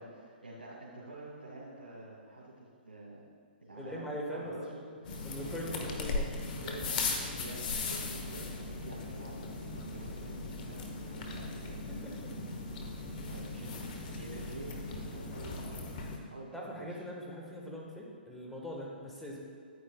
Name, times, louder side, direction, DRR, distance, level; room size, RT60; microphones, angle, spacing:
voice 1, 0.0-2.5 2.8-3.2 3.6-5.7 6.6-6.9 7.3-7.6 7.8-8.5 8.8-12.1 13.3-16.0 16.3-17.0, right 2 dB, 90° right, -6 dB, 1.9 m, -48 dB
voice 2, 3.7-4.5 5.2-6.3 11.9-12.3 13.1-13.3 16.5-19.4, equal, 5° left, -3 dB, 1.5 m, -42 dB
sound 1, 5.0-16.2, left 3 dB, 55° left, 1.2 m, -38 dB
9.7 x 9.4 x 2.4 m, 2.2 s
hypercardioid pair, 125°, 6 cm